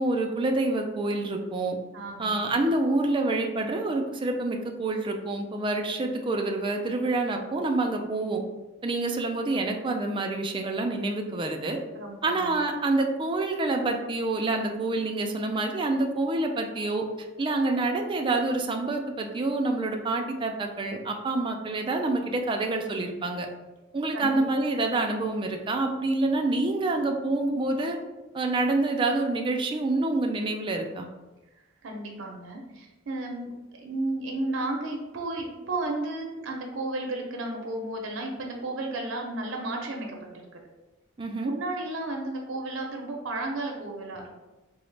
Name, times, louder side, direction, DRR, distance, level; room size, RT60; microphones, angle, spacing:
voice 1, 0.0-1.8 2.2-8.4 8.8-11.8 12.2-17.1 17.4-23.5 23.9-28.0 28.3-31.1 41.2-41.5, right 2 dB, 25° right, 3 dB, 0.3 m, -27 dB
voice 2, 1.9-2.4 11.9-12.6 24.1-24.4 31.8-33.5 33.8-40.5 41.4-44.3, right 2 dB, 75° right, 1 dB, 0.5 m, -33 dB
3.8 x 2.0 x 3.2 m, 1.1 s
head